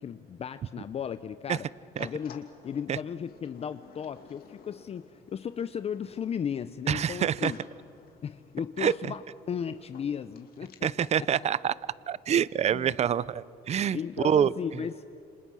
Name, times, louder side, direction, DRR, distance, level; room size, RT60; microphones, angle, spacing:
voice 1, 0.0-1.7 2.0-7.6 8.2-11.3 12.7-13.0 13.9-15.0, left 7 dB, 35° left, 12 dB, 0.6 m, -35 dB
sound 1, 2.0-11.1, left 6 dB, 60° left, 2.8 m, -54 dB
voice 2, 6.9-7.5 8.8-9.1 10.8-11.7 12.1-14.0 14.2-14.5, right 9 dB, 40° right, 20 dB, 0.6 m, -26 dB
29.0 x 27.0 x 6.3 m, 2.5 s
cardioid pair, 110°, 17 cm